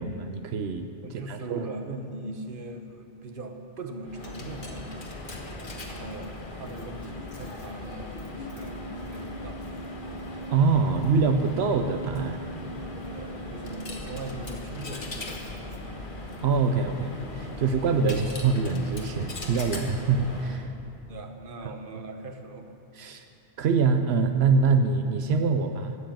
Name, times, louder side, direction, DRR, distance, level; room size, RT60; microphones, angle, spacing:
voice 1, 0.0-1.8 10.5-12.4 16.4-20.7 21.6-22.0 22.9-23.2 23.6-26.0, right 4 dB, 80° right, 7 dB, 0.9 m, -25 dB
voice 2, 1.0-5.5 5.8-9.6 13.1-15.9 21.1-22.7, right 2 dB, 55° right, 5 dB, 1.2 m, -40 dB
Coin (dropping), 4.0-20.7, left 1 dB, 55° left, 1.6 m, -38 dB
13.0 x 8.4 x 8.7 m, 2.5 s
omnidirectional pair, 1.1 m